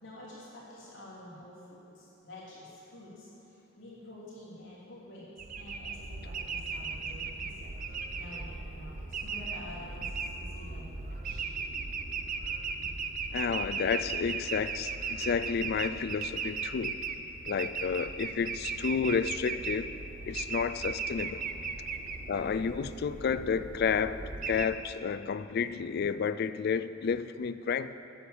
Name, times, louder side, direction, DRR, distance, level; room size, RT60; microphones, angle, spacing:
voice 1, 0.0-3.3 3.8-11.4 21.9-22.2, left 1 dB, 65° left, -8 dB, 2.8 m, -49 dB
sound 1, 5.4-24.7, right 4 dB, 40° right, 0.6 m, -37 dB
voice 2, 13.3-17.0 17.5-19.9 20.3-21.5 22.3-27.9, left 6 dB, 50° left, 13 dB, 0.3 m, -31 dB
8.5 x 7.1 x 8.4 m, 2.9 s
head